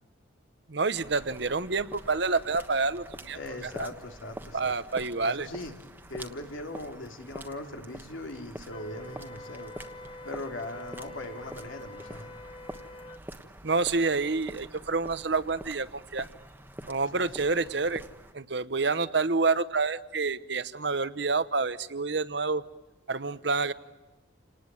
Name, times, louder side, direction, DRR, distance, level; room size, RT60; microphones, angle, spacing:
voice 1, 0.7-3.4 3.8-3.9 4.5-5.5 13.6-16.3 16.9-18.0 18.3-22.6 23.1-23.7, right 4 dB, 65° right, 14 dB, 1.0 m, -28 dB
sound 1, 0.9-18.3, right 1 dB, 10° right, 1.3 m, -46 dB
voice 2, 3.3-4.7 5.2-5.8 6.1-9.7 10.2-12.3 17.1-17.3, left 1 dB, 90° left, 4 dB, 3.4 m, -40 dB
Wind instrument woodwind instrument, 8.7-13.2, left 2 dB, 25° left, 0.9 m, -46 dB
29.0 x 19.5 x 9.2 m, 1.1 s
head